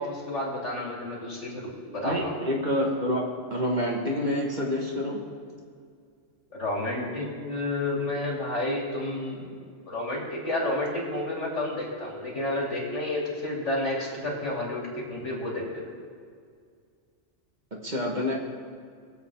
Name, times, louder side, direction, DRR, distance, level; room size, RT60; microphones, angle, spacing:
voice 1, 0.0-2.3 6.5-15.8, left 1 dB, 75° left, -3 dB, 3.2 m, -31 dB
voice 2, 2.0-5.3 17.7-18.3, left 1 dB, 40° right, -1 dB, 1.6 m, -28 dB
21.5 x 8.0 x 3.5 m, 2.1 s
omnidirectional pair, 1.2 m